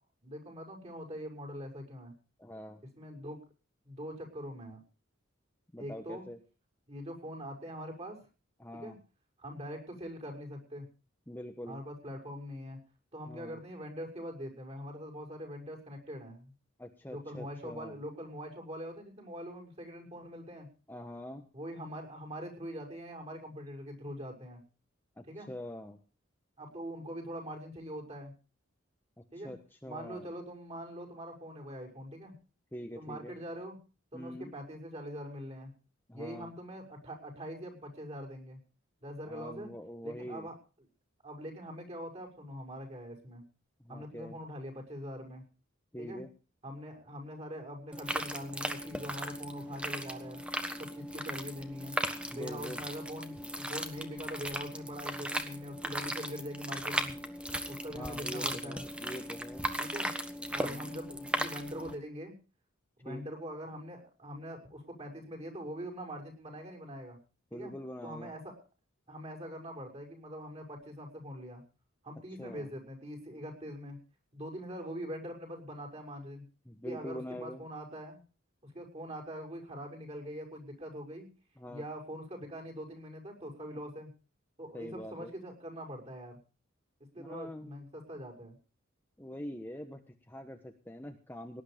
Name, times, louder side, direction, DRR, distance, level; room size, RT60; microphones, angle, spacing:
voice 1, 0.2-2.1 3.0-3.4 3.8-4.8 5.8-6.2 6.9-8.2 8.7-8.9 9.4-10.9 11.7-12.8 13.1-16.5 17.1-20.7 21.5-24.6 25.3-25.5 26.6-28.3 29.3-29.5 29.8-32.4 33.0-33.8 34.1-35.7 36.1-38.6 39.0-39.7 40.0-40.5 41.2-43.4 43.9-45.4 46.0-46.2 46.6-50.4 50.8-52.0 52.3-57.2 57.7-58.8 59.8-60.1 60.5-62.3 63.0-67.2 67.5-67.7 68.0-68.6 69.1-71.6 72.0-74.0 74.3-76.5 76.8-78.2 78.6-81.3 81.7-84.1 84.6-86.4 87.1-88.6, equal, 35° right, 0 dB, 6.3 m, -43 dB
voice 2, 2.4-2.8 5.7-6.4 8.6-9.0 11.3-11.8 13.3-13.6 16.8-18.0 20.9-21.5 25.2-26.0 29.2-30.3 32.7-33.4 34.1-34.5 36.1-36.5 39.2-40.5 43.8-44.4 45.9-46.3 52.3-52.8 57.9-59.7 60.6-60.9 63.0-63.2 67.5-68.3 72.4-72.7 76.6-77.6 81.6-81.8 83.7-83.8 84.7-85.3 87.2-87.8 89.2-91.6, equal, 10° left, 4 dB, 1.2 m, -44 dB
sound 1, 47.9-61.9, right 1 dB, 5° right, 1.3 m, -37 dB
18.5 x 11.0 x 5.1 m, 0.35 s
head